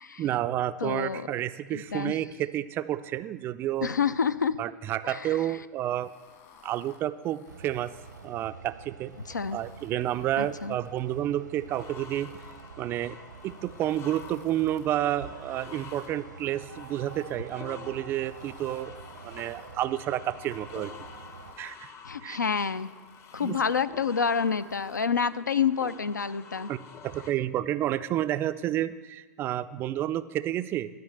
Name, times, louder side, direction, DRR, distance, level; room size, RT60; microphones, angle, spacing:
voice 1, 0.2-3.9 4.6-6.1 6.6-7.9 8.2-9.1 9.5-12.3 12.8-13.2 13.4-19.0 19.2-20.9 21.6-21.9 22.2-22.4 23.4-23.6 26.7-26.8 27.0-30.9, right 12 dB, 25° right, 13 dB, 0.3 m, -30 dB
voice 2, 0.8-1.3 1.7-2.1 3.8-4.6 5.0-5.3 9.3-9.6 10.4-10.8 22.0-22.9 23.3-26.7, left 6 dB, 80° left, 15 dB, 0.4 m, -28 dB
sound 1, 5.8-8.3 8.9-11.1 11.6-12.7 13.2-14.9 15.4-16.1 16.7-17.6 18.1-19.8 20.3-21.8 22.3-23.9 24.4-25.3, left 6 dB, 45° left, 1.6 m, -58 dB
sound 2, 7.4-21.5, right 5 dB, 80° right, 0.8 m, -47 dB
sound 3, 11.7-27.3, left 6 dB, 25° left, 0.6 m, -48 dB
12.0 x 5.2 x 7.5 m, 1.3 s
figure-of-eight pair, 105°, 10 cm